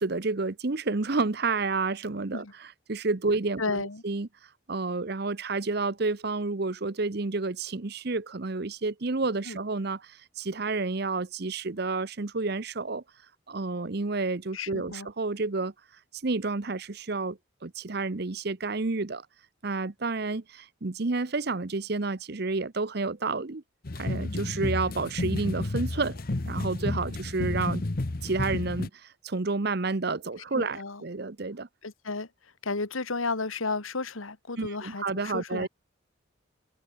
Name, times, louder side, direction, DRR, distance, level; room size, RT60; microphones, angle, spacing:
voice 1, 0.0-2.4 2.9-4.3 4.7-13.0 13.5-15.7 16.2-19.3 19.6-23.6 24.0-26.2 26.5-27.8 28.2-31.7 34.6-35.7, right 3 dB, 50° right, 0.8 m, -30 dB
voice 2, 3.6-4.0 9.5-9.6 14.5-15.1 30.6-31.0 31.8-32.3 32.6-35.7, left 3 dB, 85° left, 1.9 m, -33 dB
sound 1, 23.8-28.9, left 2 dB, 45° left, 0.9 m, -31 dB
head